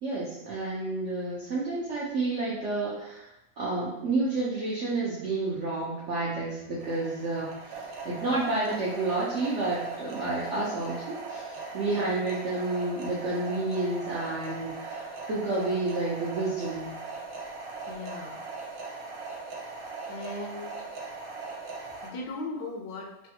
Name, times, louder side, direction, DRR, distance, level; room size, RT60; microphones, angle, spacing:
voice 1, 0.0-3.3 3.6-7.5 8.0-16.9, right 2 dB, 70° right, -7 dB, 0.7 m, -30 dB
sound 1, 6.8-22.1, right 3 dB, 85° right, 1.3 m, -39 dB
voice 2, 17.9-18.4 20.1-20.8 22.0-23.1, left 2 dB, 75° left, 1 dB, 1.2 m, -38 dB
3.2 x 2.2 x 2.8 m, 0.88 s
omnidirectional pair, 1.9 m